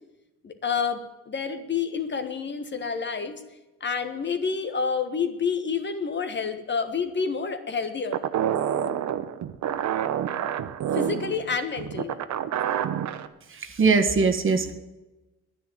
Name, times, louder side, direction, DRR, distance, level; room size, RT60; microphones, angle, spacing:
voice 1, 0.4-3.4 3.8-8.2 10.9-12.2, left 5 dB, 35° left, 8 dB, 1.6 m, -29 dB
sound 1, 8.1-13.3, right 9 dB, 65° right, 1.0 m, -28 dB
voice 2, 13.5-14.7, right 4 dB, 40° right, 6 dB, 1.7 m, -21 dB
10.5 x 10.0 x 8.7 m, 1.0 s
cardioid pair, 90°, 30 cm